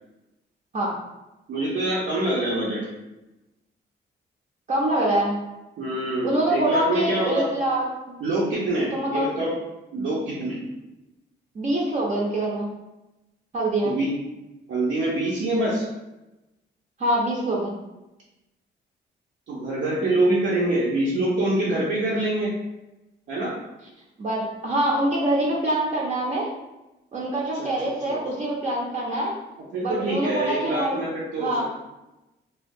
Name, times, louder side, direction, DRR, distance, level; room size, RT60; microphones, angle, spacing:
voice 1, 1.5-2.8 5.8-7.5 8.2-9.5 9.9-10.6 13.8-14.1 14.7-15.8 19.5-22.5 23.3-23.5 27.6-27.7 28.1-28.5 29.7-31.5, right 1 dB, 80° right, -7 dB, 0.7 m, -25 dB
voice 2, 4.7-5.4 6.2-7.9 8.9-9.3 11.5-12.7 13.5-14.0 17.0-17.7 24.2-26.5 27.1-29.3 29.8-31.0 31.4-31.6, right 1 dB, 40° right, -3 dB, 0.5 m, -24 dB
3.3 x 2.2 x 2.6 m, 0.99 s
wide cardioid pair, 160°, 19 cm